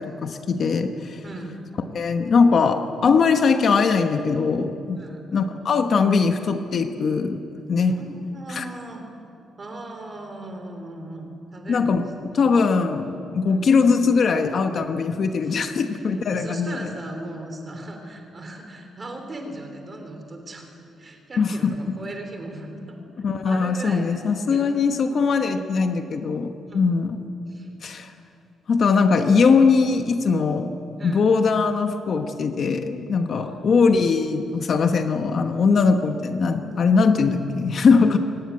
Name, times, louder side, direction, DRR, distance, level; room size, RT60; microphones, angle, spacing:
voice 1, 0.0-1.2 1.9-5.0 5.3-7.4 7.7-8.0 8.5-8.7 11.7-12.0 12.3-16.8 21.4-21.9 23.2-27.2 27.8-28.1 28.7-30.7 31.0-38.2, left 5 dB, 40° left, 6 dB, 1.1 m, -21 dB
voice 2, 1.2-1.6 5.0-5.2 7.8-9.0 9.6-12.0 13.4-13.8 15.4-15.9 16.3-23.0 23.4-24.8 25.1-25.2 26.6-26.9 27.5-27.7 31.0-31.2 33.3-33.7, right 2 dB, 25° right, 4 dB, 3.4 m, -38 dB
22.5 x 19.0 x 9.7 m, 2.6 s
cardioid pair, 175°, 0 cm